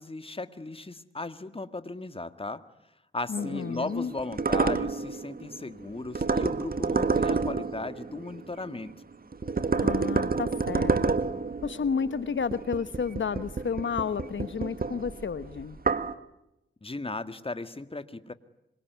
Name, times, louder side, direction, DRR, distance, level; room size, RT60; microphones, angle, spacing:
voice 1, 0.0-2.6 3.1-9.0 16.8-18.3, left 2 dB, 30° left, 11 dB, 1.9 m, -36 dB
voice 2, 3.3-4.1 9.8-11.2 11.6-15.8, left 6 dB, 75° left, 13 dB, 1.1 m, -31 dB
sound 1, 3.4-8.9 9.3-16.1, right 4 dB, 50° right, 1.7 m, -29 dB
26.5 x 24.0 x 9.4 m, 0.88 s
cardioid pair, 55°, 20 cm